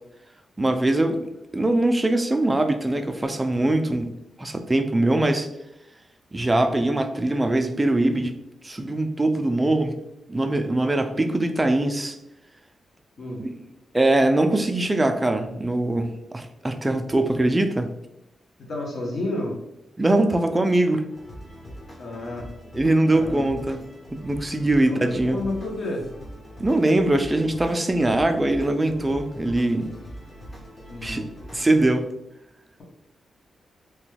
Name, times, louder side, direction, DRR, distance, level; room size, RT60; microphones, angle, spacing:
voice 1, 0.6-1.3 1.5-4.1 4.4-5.5 6.3-8.4 8.6-10.0 10.3-12.2 13.4-13.5 13.9-17.9 20.0-21.1 22.7-23.8 24.1-25.4 26.6-30.0 31.0-31.2 31.5-32.1, right 2 dB, 15° right, 7 dB, 0.3 m, -22 dB
voice 2, 18.6-19.6 22.0-22.5 23.1-23.5 24.8-26.1 30.9-31.3, left 2 dB, 60° left, -1 dB, 0.9 m, -31 dB
sound 1, 21.1-31.9, equal, 30° left, 0.7 m, -42 dB
2.9 x 2.2 x 3.2 m, 0.86 s
cardioid pair, 105°, 0 cm